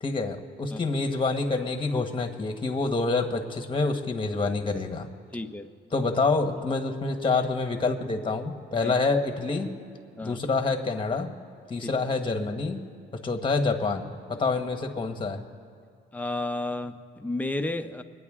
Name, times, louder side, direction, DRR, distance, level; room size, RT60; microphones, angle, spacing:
voice 1, 0.0-5.1 5.9-9.8 10.2-11.3 11.7-12.9 13.2-15.4, left 3 dB, 25° left, 5 dB, 1.2 m, -27 dB
voice 2, 5.3-5.7 8.8-8.9 10.2-10.4 11.8-11.9 16.1-18.0, left 2 dB, 10° left, 7 dB, 0.7 m, -32 dB
24.5 x 9.4 x 3.7 m, 2.4 s
cardioid pair, 90°, 20 cm